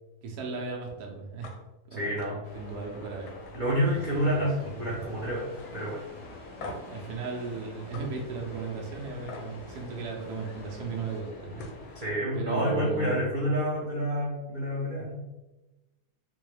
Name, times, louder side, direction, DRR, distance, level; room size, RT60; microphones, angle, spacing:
voice 1, 0.2-1.5 1.9-3.3 4.1-4.5 4.8-4.9 6.6-11.9 12.3-13.5, right 4 dB, 70° right, -1 dB, 1.2 m, -36 dB
sound 1, 1.4-1.6 1.9-2.3 2.7-2.9 3.3-4.4 4.7-5.1 5.6-5.7 6.6-7.0 7.9-8.1 9.3-9.5 11.2-11.3 11.5-11.8, left 3 dB, 90° left, 1.2 m, -43 dB
voice 2, 1.9-2.4 3.5-5.5 5.7-6.0 11.9-15.2, equal, 55° right, -6 dB, 0.5 m, -28 dB
sound 2, 2.4-12.1, left 2 dB, 60° left, 0.7 m, -48 dB
sound 3, 3.8-11.2, equal, 15° left, 0.7 m, -50 dB
3.8 x 2.2 x 3.2 m, 1.0 s
omnidirectional pair, 1.8 m